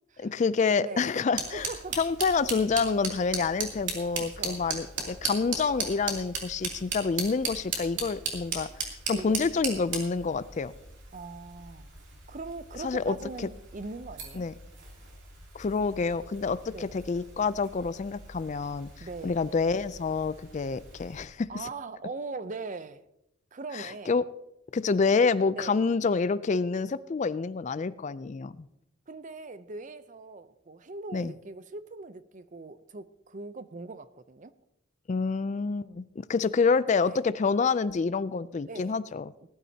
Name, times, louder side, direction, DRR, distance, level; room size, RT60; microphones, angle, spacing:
voice 1, 0.2-1.7 2.0-8.7 9.1-10.7 12.8-13.2 14.4-14.5 15.5-21.7 23.7-24.2 24.7-28.7 31.1-31.3 35.1-39.3, left 4 dB, 35° left, 0.3 m, -28 dB
voice 2, 0.7-1.1 1.5-2.0 4.2-4.6 9.1-9.8 11.1-11.9 12.3-14.5 16.7-17.0 19.0-19.4 21.5-23.0 23.5-24.1 25.6-25.8 29.1-34.5 37.0-37.2 38.7-39.0 39.4-39.5, right 3 dB, 40° right, 0.6 m, -41 dB
sound 1, 1.3-21.3, right 4 dB, 60° right, 2.9 m, -38 dB
19.5 x 12.0 x 2.8 m
head